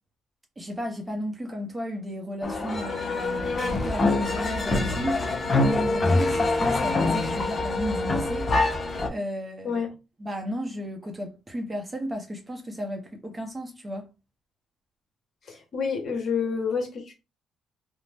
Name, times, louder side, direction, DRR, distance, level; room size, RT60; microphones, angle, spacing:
voice 1, 0.6-8.6 9.1-9.8 10.2-14.1, equal, 20° right, 0.7 m, -33 dB
sound 1, 2.4-9.1, left 2 dB, 35° left, 0.6 m, -25 dB
voice 2, 15.5-17.1, left 6 dB, 55° left, 1.1 m, -28 dB
2.5 x 2.1 x 3.3 m
cardioid pair, 90°, 0 cm